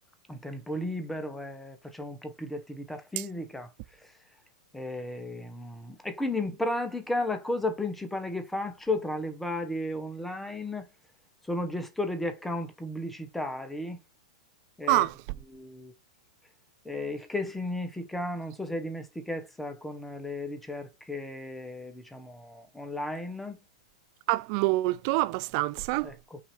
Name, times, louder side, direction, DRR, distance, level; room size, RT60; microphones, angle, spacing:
voice 1, 0.3-3.7 4.7-10.8 11.5-14.0 14.8-15.1 15.5-15.9 16.8-23.6 26.0-26.4, left 1 dB, 5° left, 0.9 m, -34 dB
voice 2, 14.9-15.2 24.3-26.1, right 19 dB, 50° right, 0.4 m, -26 dB
5.8 x 2.8 x 3.2 m
hypercardioid pair, 110°, 3 cm